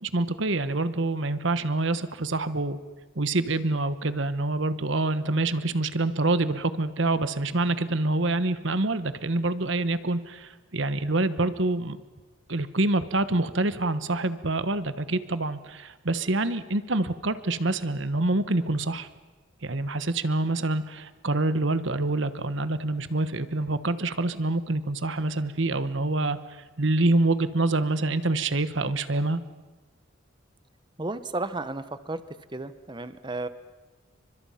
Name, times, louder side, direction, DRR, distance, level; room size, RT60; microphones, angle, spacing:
voice 1, 0.0-2.8 3.2-12.0 12.5-19.1 19.6-26.4 26.8-29.4, right 2 dB, 60° right, 13 dB, 1.2 m, -26 dB
voice 2, 31.0-32.2 32.5-33.5, right 2 dB, 20° right, 12 dB, 0.9 m, -33 dB
30.0 x 24.5 x 5.8 m, 1.3 s
head